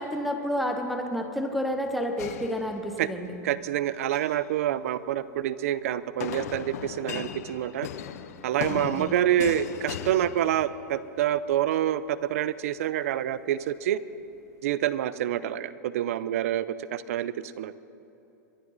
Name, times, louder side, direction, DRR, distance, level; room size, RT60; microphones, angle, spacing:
voice 1, 0.0-3.3 8.7-9.2, equal, ahead, 3 dB, 0.7 m, -30 dB
sound 1, 2.2-3.3 3.9-4.4 6.2-11.0, left 9 dB, 60° left, 0.7 m, -37 dB
voice 2, 3.4-7.9 8.4-14.0 14.6-17.7, right 11 dB, 55° right, 16 dB, 0.5 m, -27 dB
23.0 x 11.0 x 4.0 m, 2.9 s
supercardioid pair, 170°, 9 cm